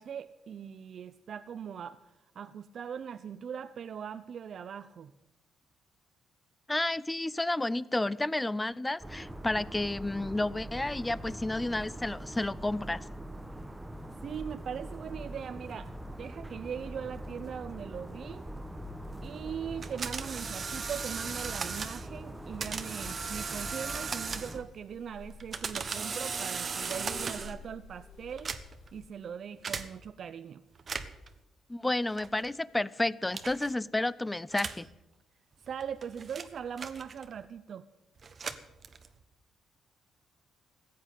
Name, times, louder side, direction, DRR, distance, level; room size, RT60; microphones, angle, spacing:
voice 1, 0.0-5.1 14.2-18.5 19.2-28.5 28.9-30.6 35.6-37.9, right 7 dB, 60° right, 0.5 m, -40 dB
voice 2, 6.7-13.0 31.7-34.9, left 2 dB, 15° left, 0.5 m, -31 dB
sound 1, 9.0-24.6, right 1 dB, 10° right, 1.1 m, -43 dB
sound 2, 19.8-22.1 22.6-24.7 25.3-27.6 28.3-28.9 29.6-29.9 30.8-31.3 32.2-32.5 33.3-33.7 34.5-34.9 35.7-37.4 38.2-39.2, right 5 dB, 40° right, 1.1 m, -37 dB
sound 3, 22.0-29.1, left 4 dB, 70° left, 1.9 m, -53 dB
15.0 x 8.8 x 9.3 m
cardioid pair, 90°, 0 cm